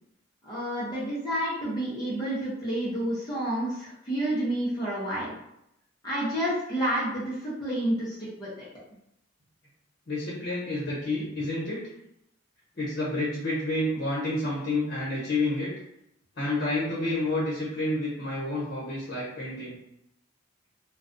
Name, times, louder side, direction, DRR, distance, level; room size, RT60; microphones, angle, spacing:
voice 1, 0.4-5.3 6.0-8.6, right 1 dB, 20° left, -9 dB, 0.6 m, -29 dB
voice 2, 10.1-11.8 12.8-15.7 16.4-19.8, left 2 dB, 55° left, -8 dB, 1.0 m, -29 dB
2.3 x 2.2 x 2.5 m, 0.80 s
head